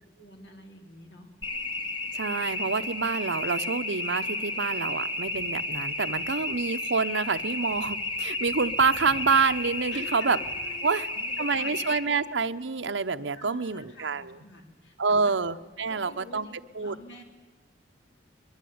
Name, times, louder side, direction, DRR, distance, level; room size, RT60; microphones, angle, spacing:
voice 1, 0.2-1.3 9.9-11.7 12.0-12.2 12.9-13.0 13.3-15.4 15.8-17.2, left 1 dB, 70° left, 4 dB, 3.7 m, -48 dB
sound 1, 1.4-12.0, left 2 dB, 25° left, 2.2 m, -32 dB
voice 2, 2.1-10.4 10.8-11.1 11.4-14.4 15.0-16.5 16.7-17.0, right 4 dB, 75° right, 8 dB, 0.9 m, -27 dB
23.5 x 22.0 x 9.5 m, 1.2 s
head